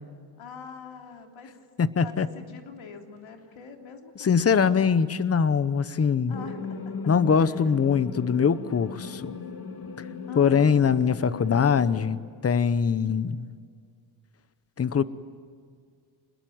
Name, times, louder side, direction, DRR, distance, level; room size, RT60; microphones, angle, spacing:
voice 1, 0.4-1.5 2.0-5.0 6.3-6.9 7.3-7.7 10.3-10.8, left 4 dB, 70° left, 3 dB, 3.4 m, -44 dB
voice 2, 1.8-2.3 4.2-6.4 7.1-9.4 10.0-10.1 10.4-13.5 14.8-15.0, left 6 dB, 30° left, 15 dB, 0.9 m, -23 dB
sound 1, 6.3-12.1, left 4 dB, 45° left, 2.1 m, -37 dB
27.0 x 21.0 x 9.4 m, 2.1 s
wide cardioid pair, 140°, 49 cm